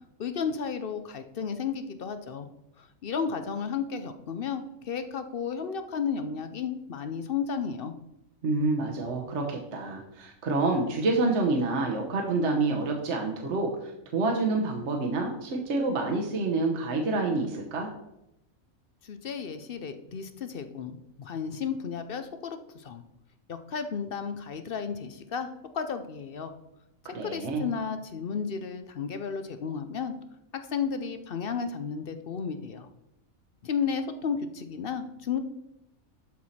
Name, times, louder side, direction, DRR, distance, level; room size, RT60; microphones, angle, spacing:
voice 1, 0.2-2.5 2.8-7.9 19.0-23.0 23.5-26.5 27.0-30.1 30.5-32.9 33.6-35.4, left 6 dB, 55° left, 9 dB, 0.7 m, -33 dB
voice 2, 8.4-17.9 27.0-27.7, right 3 dB, 55° right, 1 dB, 1.3 m, -28 dB
11.5 x 4.6 x 4.2 m, 0.84 s
omnidirectional pair, 1.5 m